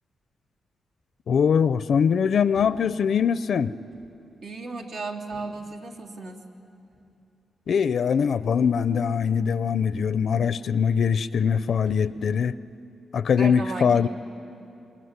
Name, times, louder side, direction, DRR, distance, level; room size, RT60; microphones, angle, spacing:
voice 1, 1.3-3.7 7.7-12.5 13.1-14.1, left 7 dB, 65° left, 15 dB, 0.5 m, -22 dB
sound 1, 2.5-3.0 3.9-4.2 5.3-5.8 6.9-7.1 8.6-9.1 9.9-10.4 11.8-12.5, right 1 dB, 55° right, 5.9 m, -49 dB
voice 2, 4.4-6.4 13.4-14.1, right 3 dB, 75° right, 0 dB, 3.0 m, -35 dB
26.5 x 22.0 x 9.6 m, 2.7 s
cardioid pair, 95°, 0 cm